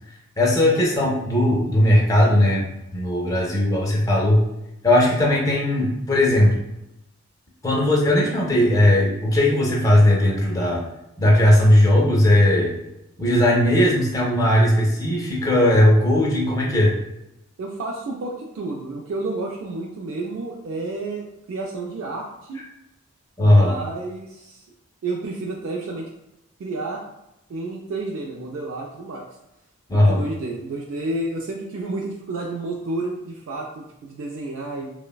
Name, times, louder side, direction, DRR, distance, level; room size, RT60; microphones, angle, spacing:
voice 1, 0.4-2.7 2.9-4.4 4.8-6.6 7.6-10.8 11.2-12.7 13.2-16.9 23.4-23.7 29.9-30.2, left 1 dB, 15° left, -3 dB, 0.4 m, -18 dB
voice 2, 17.6-22.6 23.4-24.6 25.0-26.1 26.6-27.0 27.5-29.3 29.9-34.9, right 2 dB, 65° right, -1 dB, 0.3 m, -30 dB
3.1 x 2.0 x 2.2 m, 0.90 s
head